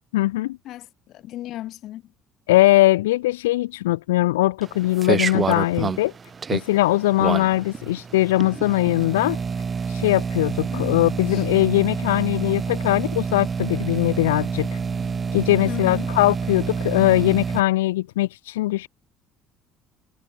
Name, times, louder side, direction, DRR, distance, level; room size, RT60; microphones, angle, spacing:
voice 1, 0.1-0.6 2.5-6.1 6.5-9.4 9.9-14.8 15.3-18.9, left 17 dB, 85° left, 2.7 m, -20 dB
voice 2, 0.6-2.1 10.7-11.0 11.3-11.5 15.6-16.1, left 14 dB, 65° left, 6.5 m, -35 dB
sound 1, 4.6-17.6, right 5 dB, 35° right, 2.0 m, -28 dB
hypercardioid pair, 65°, 0 cm